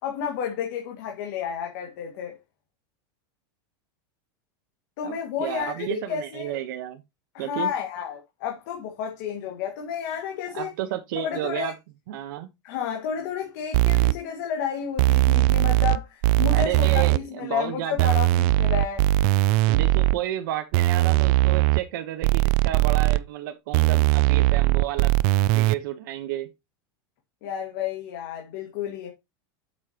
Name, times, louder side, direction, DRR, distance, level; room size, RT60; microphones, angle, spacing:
voice 1, 0.0-2.4 5.0-6.6 7.3-10.7 11.1-11.7 12.6-19.1 27.4-29.1, left 8 dB, 50° left, 2.0 m, -31 dB
voice 2, 5.0-7.0 7.4-7.7 10.5-11.8 12.1-12.5 16.5-18.2 19.7-25.2 25.5-26.5, right 13 dB, 60° right, 1.1 m, -32 dB
sound 1, 13.7-14.1 15.0-16.0 16.2-17.2 18.0-20.2 20.7-21.8 22.2-23.2 23.7-25.8, right 18 dB, 35° right, 0.3 m, -20 dB
8.3 x 7.3 x 3.0 m
supercardioid pair, 175°, 12 cm